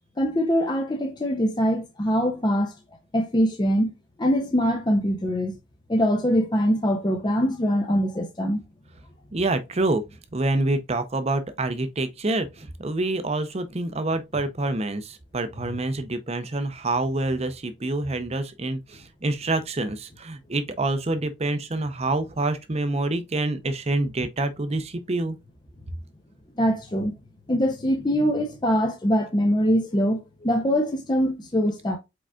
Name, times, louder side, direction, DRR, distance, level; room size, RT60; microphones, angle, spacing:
voice 1, 0.2-2.7 3.1-3.9 4.2-5.5 5.9-8.6 26.6-27.1 27.5-32.0, equal, 20° left, 0.5 m, -23 dB
voice 2, 9.3-10.0 10.3-25.4, right 2 dB, 30° right, 0.6 m, -27 dB
4.9 x 4.7 x 2.3 m
head